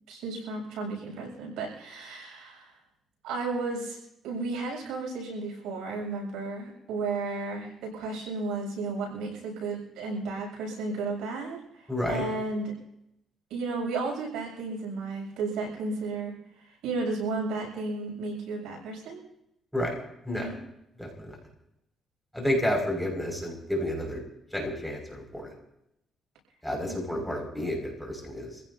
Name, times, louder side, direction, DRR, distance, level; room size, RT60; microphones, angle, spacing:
voice 1, 0.1-2.7 3.2-4.0 4.2-11.6 12.1-12.7 13.5-16.3 16.8-19.2 20.4-20.5 26.9-27.4, right 3 dB, 90° right, 0 dB, 7.4 m, -33 dB
voice 2, 11.9-12.2 19.7-19.9 20.2-20.5 21.0-21.4 22.3-24.2 24.5-25.5 26.6-28.5, left 1 dB, ahead, 0 dB, 5.9 m, -30 dB
27.0 x 16.0 x 2.8 m, 0.82 s
cardioid pair, 90°, 0 cm